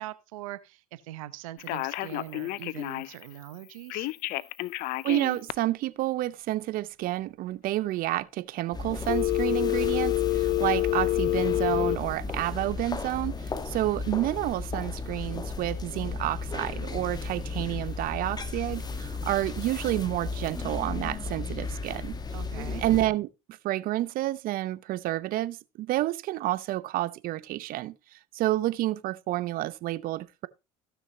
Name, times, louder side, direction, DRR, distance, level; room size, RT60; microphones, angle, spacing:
voice 1, 0.0-4.1 22.3-22.8, right 15 dB, 90° right, 0.9 m, -42 dB
Telephone, 1.6-3.2 3.9-5.5 9.1-12.0, left 18 dB, 65° left, 0.5 m, -28 dB
voice 2, 5.0-22.2 22.8-27.9 28.3-30.5, right 16 dB, 60° right, 0.7 m, -29 dB
sound 1, 8.7-23.1, left 4 dB, 25° left, 1.4 m, -35 dB
15.5 x 6.3 x 2.8 m
supercardioid pair, 85°, 17 cm